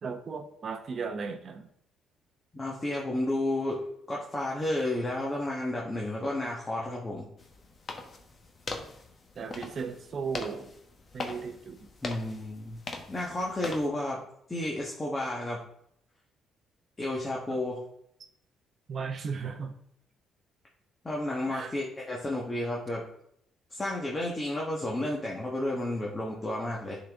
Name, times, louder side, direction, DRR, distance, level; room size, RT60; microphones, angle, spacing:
voice 1, 0.0-1.7 9.4-10.7 11.1-11.9 17.5-17.6 18.9-19.8 21.5-21.8, right 5 dB, 45° right, 8 dB, 0.8 m, -36 dB
voice 2, 2.5-7.3 12.0-12.8 13.1-14.2 14.5-15.6 17.0-17.8 21.0-23.0 23.7-27.0, left 1 dB, 20° left, -3 dB, 1.3 m, -32 dB
sound 1, 7.4-13.9, left 3 dB, 35° left, 1.0 m, -41 dB
9.9 x 4.1 x 3.6 m, 0.73 s
cardioid pair, 115°, 0 cm